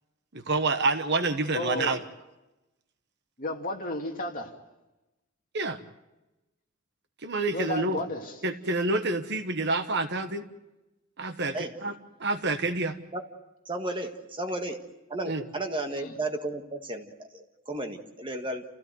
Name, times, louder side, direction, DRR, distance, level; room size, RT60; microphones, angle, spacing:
voice 1, 0.3-2.0 5.5-5.8 7.2-8.0 8.4-10.5 11.2-11.9 12.2-13.0 15.3-15.4, right 3 dB, 55° right, 9 dB, 1.3 m, -28 dB
voice 2, 1.5-2.0 3.4-4.5 7.5-8.4 15.9-16.1, left 2 dB, 40° left, 1 dB, 2.6 m, -33 dB
voice 3, 13.6-14.8 15.1-18.6, right 1 dB, 25° right, 4 dB, 1.7 m, -33 dB
28.5 x 16.5 x 8.0 m, 1.0 s
head